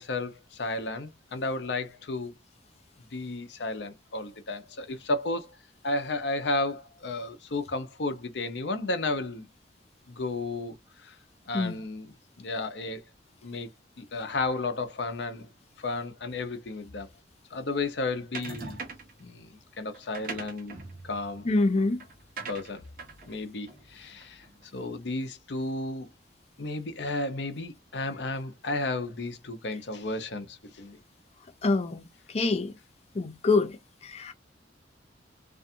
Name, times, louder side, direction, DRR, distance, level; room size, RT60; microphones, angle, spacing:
voice 1, 0.0-2.3 3.1-5.6 5.8-9.5 10.1-10.8 11.0-11.1 11.5-13.0 13.4-13.7 14.0-15.5 15.8-17.1 17.5-18.8 19.2-20.8 21.0-21.5 22.5-22.8 23.3-24.5 24.7-26.1 26.6-31.0, left 2 dB, 75° left, 0.7 m, -33 dB
sound 1, 18.3-19.2 19.9-24.6, right 4 dB, 50° right, 0.7 m, -42 dB
voice 2, 21.4-22.0 31.6-32.7 33.1-34.3, left 3 dB, 35° left, 0.5 m, -26 dB
2.5 x 2.4 x 2.6 m
head